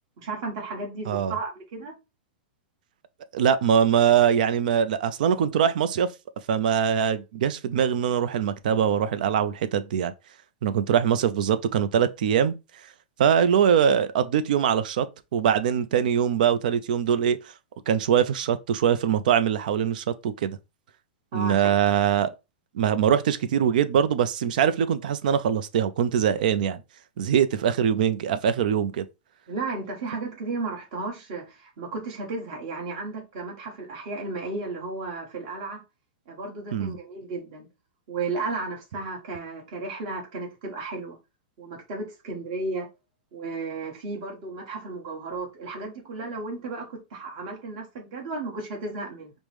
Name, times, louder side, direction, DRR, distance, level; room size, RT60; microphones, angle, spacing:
voice 1, 0.2-2.0 21.3-21.7 29.5-35.8 36.3-37.7 38.1-41.2 41.6-42.9 43.3-49.3, right 3 dB, 40° right, 1.3 m, -34 dB
voice 2, 3.3-6.1 6.5-10.1 10.6-12.5 13.2-15.1 15.3-17.4 17.9-20.6 21.3-22.3 22.7-26.8 27.2-29.0 36.7-37.0, right 8 dB, 60° right, 0.4 m, -22 dB
5.1 x 2.1 x 3.1 m
supercardioid pair, 170°, 5 cm